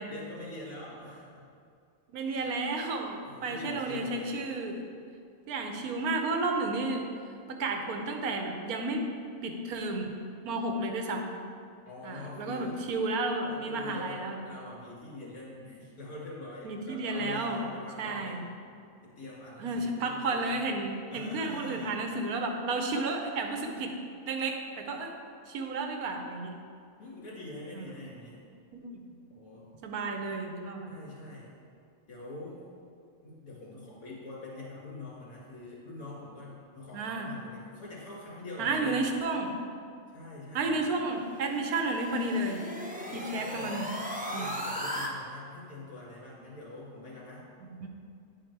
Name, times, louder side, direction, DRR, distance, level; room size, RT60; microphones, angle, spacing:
voice 1, 0.1-1.4 2.4-2.5 3.3-4.4 11.8-12.7 13.5-18.4 19.0-20.6 21.1-22.0 27.0-28.4 29.4-29.7 30.9-31.5 32.1-32.6 33.2-39.0 40.1-40.9 42.9-43.8 44.2-47.4, left 2 dB, 70° left, -6 dB, 2.5 m, -44 dB
voice 2, 2.1-4.7 5.5-7.0 7.5-9.1 9.4-10.1 10.4-11.3 12.0-14.5 16.6-17.6 18.0-18.4 19.6-24.0 24.3-25.1 25.5-26.6 27.7-27.9 28.7-29.0 29.8-30.9 36.9-37.3 38.6-39.5 40.5-42.6 42.9-43.9 44.3-44.5 47.6-47.9, right 2 dB, 90° right, 3 dB, 1.3 m, -32 dB
sound 1, 41.1-45.1, equal, 10° right, 0.3 m, -37 dB
9.5 x 4.3 x 4.5 m, 2.4 s
omnidirectional pair, 1.5 m